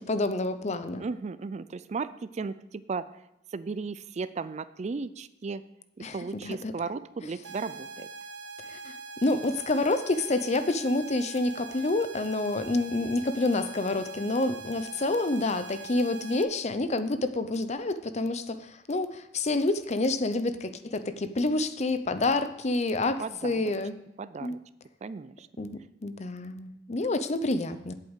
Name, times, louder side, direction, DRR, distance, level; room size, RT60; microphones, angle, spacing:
voice 1, 0.1-1.0 6.0-6.2 6.4-6.7 8.6-8.9 9.2-23.9 24.4-24.6 25.6-27.9, left 2 dB, 35° left, 11 dB, 0.7 m, -28 dB
voice 2, 1.0-3.2 3.5-5.6 6.1-8.1 23.2-23.7 24.2-24.6 25.0-25.5, right 4 dB, 35° right, 15 dB, 0.4 m, -35 dB
sound 1, 7.4-16.4, right 4 dB, 80° right, 1.0 m, -43 dB
8.3 x 8.1 x 8.1 m, 0.86 s
head